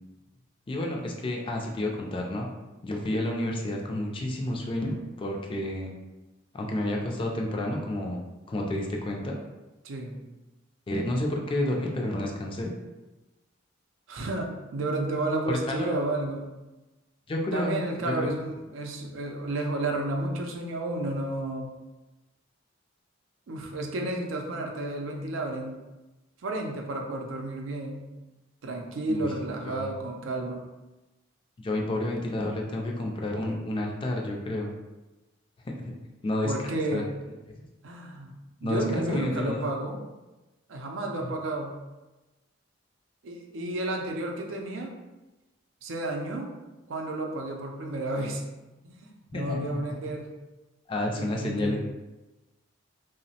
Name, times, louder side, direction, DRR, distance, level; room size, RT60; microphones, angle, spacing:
voice 1, 0.7-2.5 2.8-5.9 6.5-8.2 8.5-9.4 10.9-12.7 15.5-15.9 17.3-18.3 29.1-29.9 31.6-34.7 35.7-35.9 36.2-36.5 36.9-37.0 38.6-39.7 41.2-41.3 49.3-49.8 50.9-51.9, left 1 dB, 25° left, 0 dB, 0.3 m, -30 dB
voice 2, 9.8-10.2 14.1-16.5 17.5-21.7 23.5-25.8 26.4-28.1 28.6-30.6 36.4-37.1 37.8-38.3 38.6-40.0 40.7-41.8 43.2-45.0 45.8-46.5 46.9-48.4 48.8-50.3 51.1-51.8, right 2 dB, 85° right, 2 dB, 0.5 m, -32 dB
2.8 x 2.0 x 2.7 m, 1.1 s
head